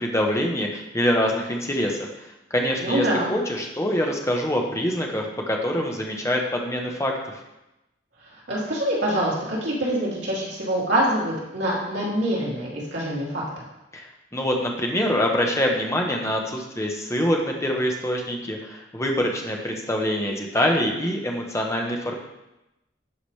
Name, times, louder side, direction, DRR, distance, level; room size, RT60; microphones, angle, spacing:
voice 1, 0.0-2.1 2.5-7.4 13.9-22.1, equal, 15° left, 1 dB, 1.0 m, -25 dB
voice 2, 2.8-3.3 8.5-13.4, right 1 dB, 75° right, -6 dB, 2.8 m, -25 dB
11.5 x 4.9 x 3.3 m, 0.94 s
head